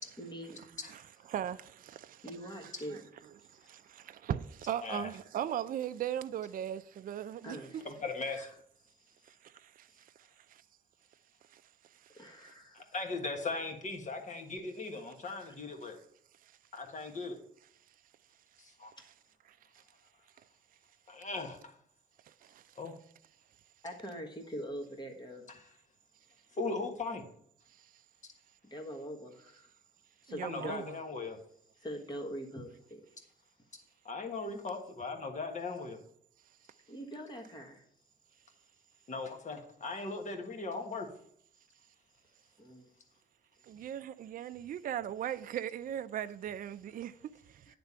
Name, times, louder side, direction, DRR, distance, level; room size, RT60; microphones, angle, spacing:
voice 1, 0.2-0.6 2.2-3.0 3.6-4.1 7.4-8.5 9.0-9.4 9.9-10.0 12.1-12.9 19.0-19.1 22.4-22.5 23.8-25.5 28.7-29.7 30.2-30.9 31.8-33.0 36.9-37.9 42.6-42.9, equal, 20° left, 1.5 m, -44 dB
voice 2, 2.4-3.0 4.3-7.6 30.3-31.0 43.7-47.1, right 10 dB, 45° right, 0.4 m, -37 dB
voice 3, 7.8-8.5 12.7-16.0 16.7-17.4 18.6-18.9 21.1-21.7 22.8-22.9 25.6-25.7 26.5-27.2 30.4-31.4 34.0-36.0 39.1-41.1, left 3 dB, 40° left, 1.4 m, -38 dB
9.5 x 3.4 x 5.6 m
cardioid pair, 90°, 20 cm